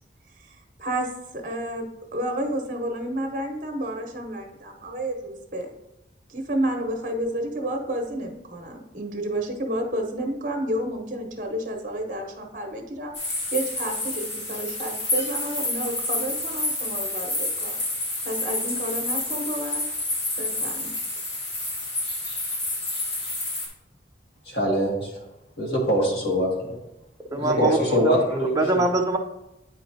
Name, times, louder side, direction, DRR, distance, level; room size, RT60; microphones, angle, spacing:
voice 1, 0.4-1.9 2.1-5.7 6.3-17.8 18.2-19.9 20.4-21.0, right 1 dB, 45° right, 3 dB, 1.0 m, -30 dB
sound 1, 13.1-23.7, left 2 dB, 85° left, 2.0 m, -29 dB
voice 2, 24.5-25.2 25.6-26.5 27.4-28.9, equal, 65° left, -3 dB, 1.8 m, -23 dB
voice 3, 27.3-28.1 28.6-29.2, right 2 dB, 20° right, 2 dB, 0.5 m, -23 dB
9.0 x 4.3 x 2.7 m, 0.90 s
head